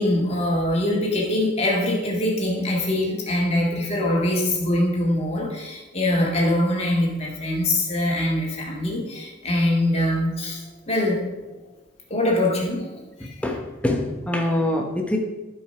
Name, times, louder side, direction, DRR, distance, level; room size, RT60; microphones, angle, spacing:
voice 1, 0.0-11.2 12.1-12.9 13.2-13.3, left 1 dB, 30° left, -3 dB, 1.8 m, -23 dB
voice 2, 13.4-15.2, left 1 dB, 5° left, 2 dB, 0.9 m, -24 dB
8.6 x 5.0 x 5.7 m, 1.1 s
head